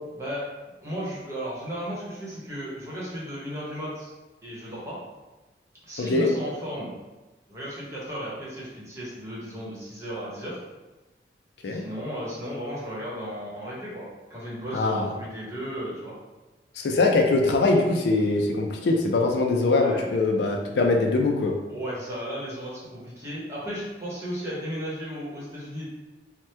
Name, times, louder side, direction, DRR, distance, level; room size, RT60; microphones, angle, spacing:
voice 1, 0.1-0.5 0.8-4.1 4.4-5.0 5.9-6.9 7.5-10.6 11.6-16.2 19.7-20.1 21.7-25.9, equal, 15° right, -7 dB, 0.9 m, -35 dB
voice 2, 6.0-6.3 11.6-11.8 14.7-15.1 16.8-21.6, left 3 dB, 70° left, 2 dB, 0.4 m, -22 dB
2.9 x 2.1 x 3.3 m, 1.2 s
head